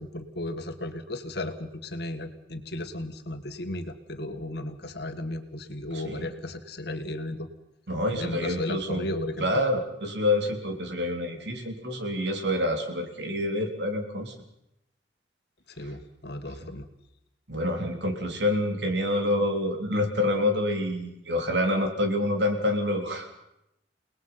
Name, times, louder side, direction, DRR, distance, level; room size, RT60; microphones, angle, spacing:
voice 1, 0.0-7.5 8.1-9.5 15.8-16.9, left 1 dB, 60° left, 7 dB, 1.9 m, -35 dB
voice 2, 5.9-6.3 7.9-9.1 9.4-14.3 17.5-23.3, left 1 dB, 70° right, 4 dB, 3.5 m, -27 dB
29.5 x 19.5 x 5.8 m, 0.83 s
head